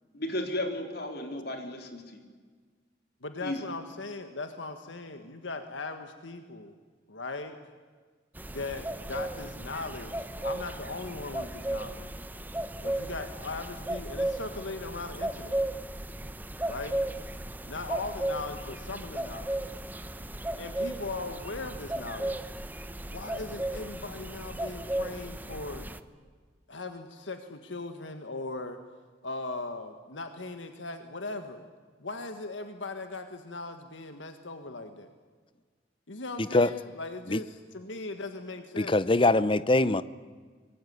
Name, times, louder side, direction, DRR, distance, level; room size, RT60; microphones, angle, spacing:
voice 1, 0.1-2.2 3.4-3.6, left 1 dB, 55° left, 3.8 m, -34 dB
voice 2, 3.2-6.7 7.1-7.6 8.5-12.1 12.8-15.6 16.6-17.0 17.6-19.6 20.6-22.5 23.0-25.9 26.7-28.8 29.2-31.7 32.0-35.1 36.1-39.0, left 3 dB, 80° left, 1.7 m, -39 dB
sound 1, 8.4-26.0, right 1 dB, 10° right, 0.8 m, -35 dB
voice 3, 38.8-40.0, left 2 dB, 25° left, 0.7 m, -22 dB
24.5 x 21.5 x 9.6 m
head